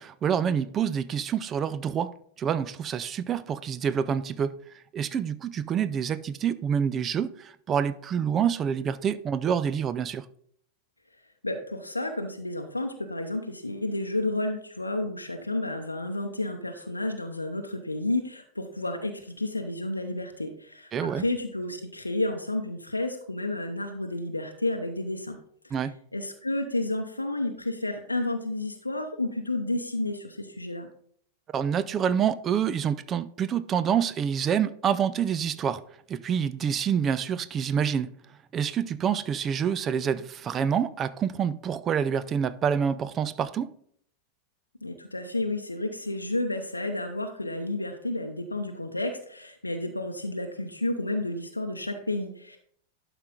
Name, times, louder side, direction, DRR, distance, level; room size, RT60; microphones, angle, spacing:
voice 1, 0.0-2.1 2.4-4.6 4.9-10.3 20.9-21.2 25.7-25.9 31.5-35.8 36.1-38.1 38.5-43.7, right 8 dB, 25° right, 0.4 m, -27 dB
voice 2, 11.4-25.4 25.6-25.7 26.1-30.9 44.8-52.6, left 2 dB, 85° left, 0.7 m, -31 dB
11.5 x 5.0 x 3.7 m
figure-of-eight pair, 90°, 0 cm